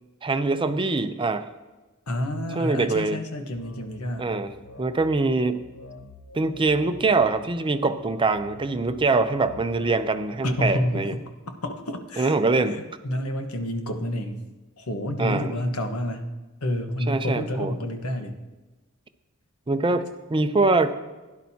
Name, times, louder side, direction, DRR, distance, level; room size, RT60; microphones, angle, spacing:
voice 1, 0.2-1.5 2.6-3.2 4.2-4.5 4.8-5.6 6.3-11.1 12.2-12.8 15.2-15.5 17.1-17.7 19.7-20.9, right 3 dB, 25° right, 9 dB, 0.5 m, -23 dB
voice 2, 2.1-4.3 10.4-11.2 11.5-12.3 13.0-14.4 14.8-16.3 16.6-18.4, left 1 dB, 85° left, 5 dB, 1.2 m, -29 dB
sound 1, 3.6-10.9, left 2 dB, 65° left, 0.8 m, -46 dB
16.5 x 10.5 x 2.8 m, 1.2 s
head